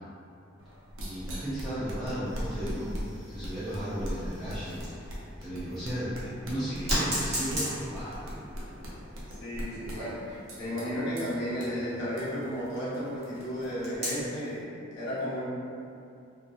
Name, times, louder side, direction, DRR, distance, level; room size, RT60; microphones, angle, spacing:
sound 1, 0.6-14.4, equal, 85° right, 0.5 m, -40 dB
voice 1, 1.0-8.2, equal, 5° left, -14 dB, 0.4 m, -35 dB
sound 2, 2.3-5.2 5.7-5.8 6.9-12.9 13.8-14.5, right 1 dB, 35° right, 0.7 m, -38 dB
voice 2, 9.4-15.4, equal, 60° left, -10 dB, 0.8 m, -33 dB
2.7 x 2.3 x 2.3 m, 2.6 s
head